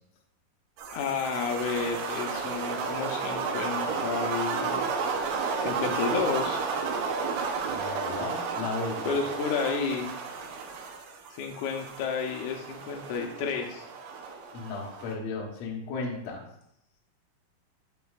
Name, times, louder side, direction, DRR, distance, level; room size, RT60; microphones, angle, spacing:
sound 1, 0.8-15.1, right 5 dB, 75° right, 2.1 m, -32 dB
voice 1, 0.9-4.9 5.6-6.6 9.0-10.1 11.3-13.8, left 5 dB, 85° left, 2 dB, 1.7 m, -31 dB
voice 2, 7.6-9.0 14.5-16.4, left 4 dB, 65° left, -1 dB, 1.8 m, -35 dB
8.5 x 6.8 x 2.4 m, 0.77 s
omnidirectional pair, 4.6 m